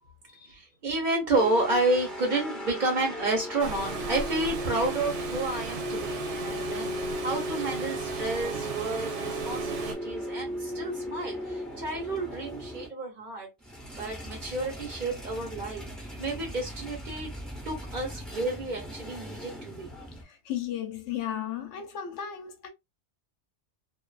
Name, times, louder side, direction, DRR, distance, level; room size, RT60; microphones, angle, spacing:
voice 1, 0.4-13.5 14.0-15.8 16.2-17.3 17.6-19.9, right 2 dB, 45° right, 0.9 m, -30 dB
sound 1, 1.3-12.9 13.6-20.2, equal, ahead, 0.6 m, -37 dB
Water, 3.6-9.9, right 5 dB, 75° right, 1.0 m, -37 dB
voice 2, 20.2-22.7, left 10 dB, 85° left, 1.0 m, -35 dB
2.5 x 2.4 x 2.3 m
omnidirectional pair, 1.2 m